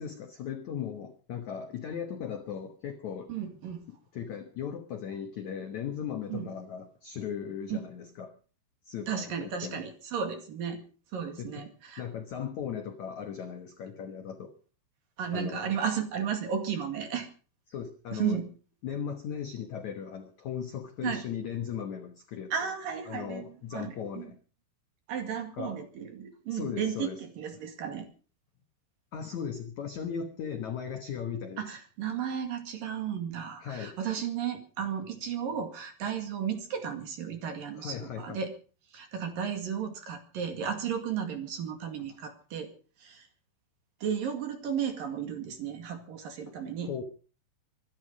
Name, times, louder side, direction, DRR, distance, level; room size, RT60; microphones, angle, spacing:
voice 1, 0.0-3.3 4.1-8.3 8.8-9.9 11.4-11.6 12.0-14.5 15.3-15.8 17.7-18.4 18.8-22.5 23.1-24.4 25.6-25.7 26.5-27.2 29.1-31.7 33.6-34.0 37.7-38.4 42.1-42.2 46.5-46.6 46.8-47.0, left 7 dB, 75° left, 6 dB, 1.7 m, -37 dB
voice 2, 3.3-3.8 6.3-6.5 7.7-7.8 9.1-10.8 11.1-12.0 15.2-17.3 18.1-18.5 21.0-21.2 22.5-23.4 23.7-24.3 25.1-28.1 31.6-38.5 38.9-42.7 43.0-43.3 44.0-46.9, right 8 dB, 55° right, 6 dB, 3.4 m, -34 dB
24.0 x 11.5 x 5.2 m, 0.39 s
omnidirectional pair, 5.4 m